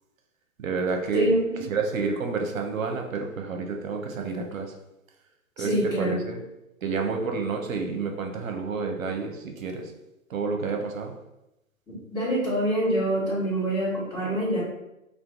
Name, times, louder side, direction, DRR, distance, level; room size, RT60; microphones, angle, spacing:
voice 1, 0.6-1.3 1.7-4.7 5.6-6.4 6.8-9.8 10.3-11.1, right 4 dB, 70° right, 3 dB, 0.7 m, -29 dB
voice 2, 1.1-1.6 5.6-6.2 11.9-14.6, right 1 dB, 10° left, -10 dB, 1.3 m, -26 dB
2.6 x 2.4 x 3.5 m, 0.91 s
figure-of-eight pair, 120°, 41 cm